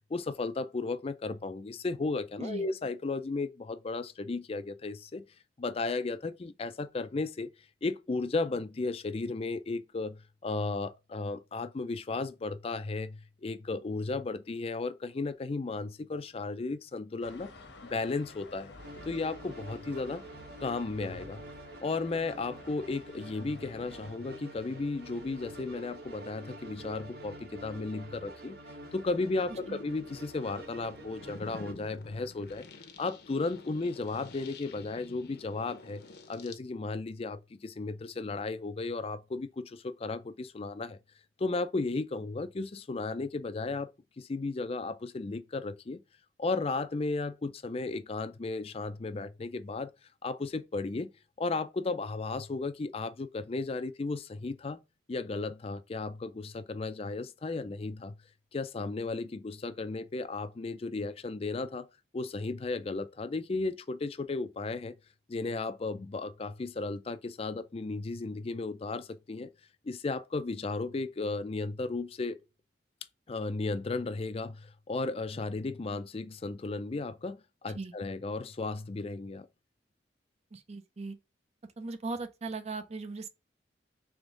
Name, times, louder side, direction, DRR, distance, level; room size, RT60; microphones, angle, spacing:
voice 1, 0.1-5.2 5.6-7.5 7.8-17.5 17.9-18.7 19.0-20.2 20.6-21.4 21.8-28.6 28.9-32.7 33.0-36.0 36.3-41.0 41.4-43.9 44.2-46.0 46.4-49.9 50.2-51.1 51.4-54.8 55.1-58.2 58.5-61.9 62.1-64.9 65.3-69.5 69.8-72.4 73.3-79.5, left 3 dB, 35° left, 0.4 m, -34 dB
sound 1, 17.2-24.1, left 2 dB, 80° left, 1.1 m, -52 dB
sound 2, 18.8-31.7, right 1 dB, 60° right, 0.9 m, -48 dB
sound 3, 24.0-26.1 26.7-27.1 27.8-36.6, left 3 dB, 60° left, 0.7 m, -51 dB
voice 2, 80.5-81.2 81.8-83.3, right 3 dB, 35° right, 0.5 m, -38 dB
3.5 x 3.5 x 3.7 m
head